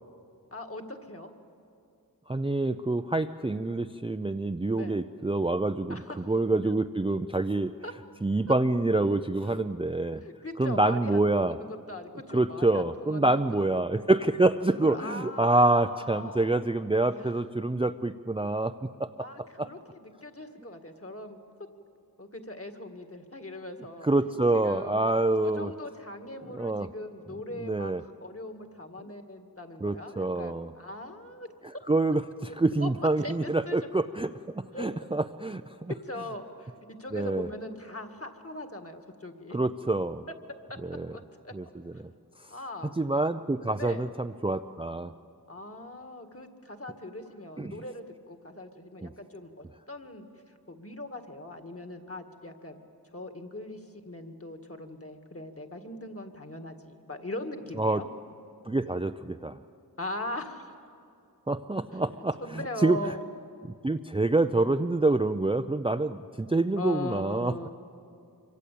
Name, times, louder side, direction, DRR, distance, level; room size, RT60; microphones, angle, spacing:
voice 1, 0.5-1.3 4.7-5.0 5.9-6.3 6.6-6.7 7.8-7.9 9.4-9.5 10.2-14.1 14.8-16.6 17.1-17.3 19.2-21.4 22.2-24.1 24.5-25.0 25.4-31.5 32.8-33.9 34.7-35.0 35.9-39.6 40.7-40.8 41.1-41.5 42.5-42.9 43.7-44.1 45.5-50.3 50.7-52.8 53.1-58.1 60.0-60.7 61.9-63.3 66.8-67.7, left 1 dB, 35° left, 6 dB, 2.0 m, -40 dB
voice 2, 2.3-7.7 8.2-10.2 10.6-11.6 12.3-19.1 19.6-19.7 24.0-25.7 26.5-26.9 27.6-28.0 29.8-30.7 31.9-35.9 37.1-37.5 39.5-40.2 40.9-41.1 41.5-42.1 43.0-45.1 47.6-47.8 49.0-49.1 57.8-58.0 58.7-59.6 61.5-63.1 63.8-67.5, right 2 dB, 15° right, 9 dB, 0.5 m, -27 dB
25.0 x 24.0 x 8.5 m, 2.6 s
wide cardioid pair, 60°, 38 cm